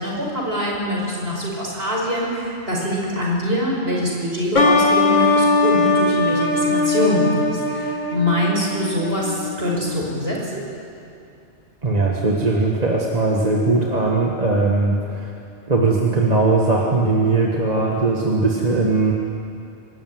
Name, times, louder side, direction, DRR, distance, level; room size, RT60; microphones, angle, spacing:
voice 1, 0.0-10.6, equal, 60° right, -3 dB, 5.5 m, -24 dB
sound 1, 4.5-10.0, left 3 dB, 45° left, 1.8 m, -20 dB
voice 2, 11.8-15.3 15.7-19.1, right 3 dB, 35° right, -2 dB, 1.7 m, -19 dB
24.0 x 13.5 x 9.6 m, 2.6 s
omnidirectional pair, 1.2 m